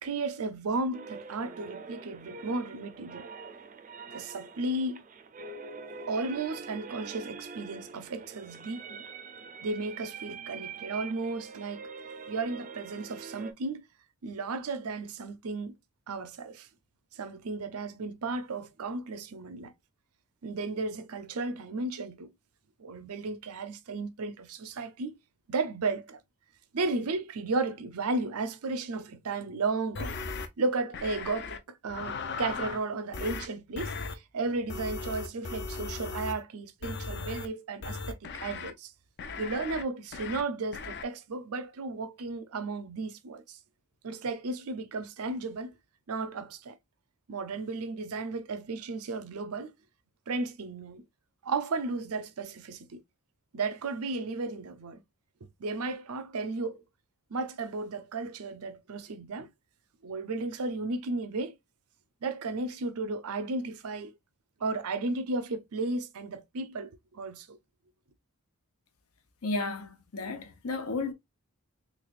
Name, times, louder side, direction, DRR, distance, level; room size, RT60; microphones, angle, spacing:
voice 1, 0.0-3.3 4.1-5.0 6.1-9.0 9.6-11.8 12.3-13.8 14.2-15.7 16.1-16.7 17.1-19.7 20.4-22.3 22.8-25.2 25.5-26.2 26.7-30.2 30.6-38.9 39.4-43.6 44.0-45.7 46.1-46.8 47.3-49.7 50.3-51.0 51.4-53.0 53.5-55.0 55.6-56.8 57.3-59.5 60.0-61.6 62.2-64.1 64.6-67.6, right 3 dB, 80° right, 0.6 m, -34 dB
sound 1, 0.9-13.5, right 5 dB, 35° right, 0.4 m, -44 dB
sound 2, 30.0-30.5 30.9-31.6 31.9-32.8 33.1-33.5 33.8-34.1 34.7-36.4 36.8-37.5 37.8-38.7 39.2-39.8 40.1-40.4 40.7-41.0, left 4 dB, 50° left, 0.5 m, -37 dB
voice 2, 69.4-71.1, left 3 dB, 80° left, 0.8 m, -33 dB
3.4 x 3.3 x 2.4 m
head